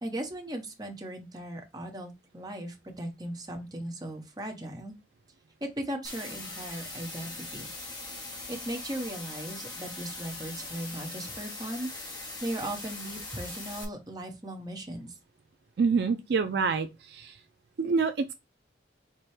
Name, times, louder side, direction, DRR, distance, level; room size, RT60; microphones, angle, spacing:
voice 1, 0.0-4.9 5.6-7.7 8.5-11.9 12.4-15.2, right 1 dB, 20° right, 0.9 m, -37 dB
sound 1, 6.0-13.8, left 2 dB, 25° left, 0.9 m, -41 dB
voice 2, 15.8-17.4 17.8-18.3, right 5 dB, 65° right, 0.4 m, -27 dB
4.8 x 2.2 x 4.2 m
head